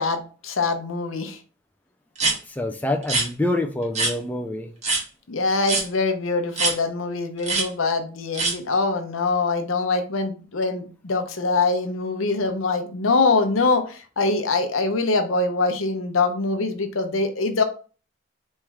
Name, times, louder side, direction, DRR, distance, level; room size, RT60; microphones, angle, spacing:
voice 1, 0.0-1.4 5.3-17.6, left 3 dB, 85° left, 0.8 m, -23 dB
sound 1, 2.2-2.4 3.0-3.3 4.0-4.1 4.8-5.0 5.6-5.9 6.6-6.7 7.4-7.7 8.3-8.5, right 3 dB, 35° right, 1.3 m, -22 dB
voice 2, 2.5-4.7, left 1 dB, 10° left, 0.3 m, -26 dB
4.5 x 3.1 x 3.5 m
head